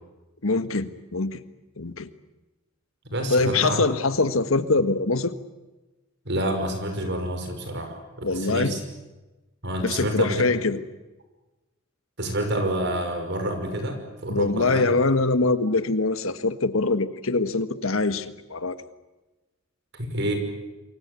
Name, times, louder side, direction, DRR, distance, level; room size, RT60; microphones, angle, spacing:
voice 1, 0.4-1.4 1.8-2.1 3.3-5.3 8.2-8.7 9.8-10.8 14.3-18.8, left 3 dB, 80° left, 11 dB, 1.5 m, -23 dB
voice 2, 3.1-3.8 6.3-8.0 8.3-8.8 9.6-10.4 12.2-14.9 19.9-20.3, right 1 dB, 55° right, 6 dB, 6.1 m, -28 dB
28.0 x 23.0 x 8.3 m, 1.1 s
head